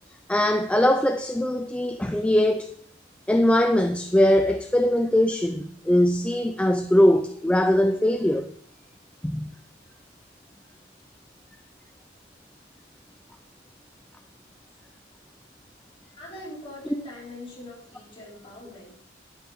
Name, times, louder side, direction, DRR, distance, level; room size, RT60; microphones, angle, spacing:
voice 1, 0.3-2.7 3.3-8.5 9.2-9.5, left 1 dB, 5° left, 0.4 m, -21 dB
voice 2, 16.2-18.9, left 1 dB, 30° left, 4.8 m, -42 dB
11.5 x 9.4 x 3.6 m
head